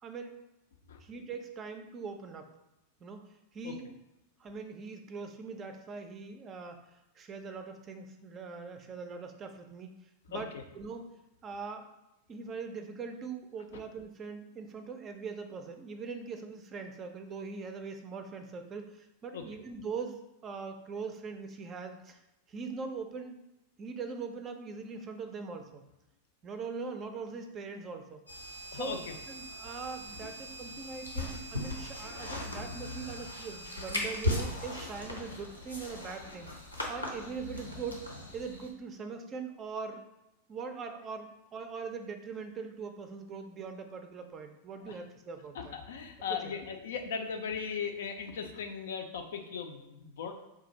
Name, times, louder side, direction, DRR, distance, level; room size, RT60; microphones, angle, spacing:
voice 1, 0.0-0.4 1.0-2.5 3.0-3.3 3.5-3.9 4.4-6.8 7.2-9.9 10.3-10.5 10.8-11.1 11.4-11.9 12.3-22.2 22.5-23.4 23.8-25.9 26.4-28.2 28.7-29.0 29.3-36.5 36.9-38.0 38.3-40.0 40.5-45.8 46.4-46.5, right 5 dB, 25° right, 6 dB, 0.4 m, -41 dB
voice 2, 10.3-10.6 19.3-19.4 28.7-29.2 32.0-32.3 34.8-34.9 44.9-45.0 45.5-50.3, left 6 dB, 60° left, 5 dB, 0.4 m, -38 dB
sound 1, 28.3-38.7, left 1 dB, 85° left, 0.7 m, -38 dB
3.7 x 2.4 x 4.1 m, 0.93 s
figure-of-eight pair, 90°, 0 cm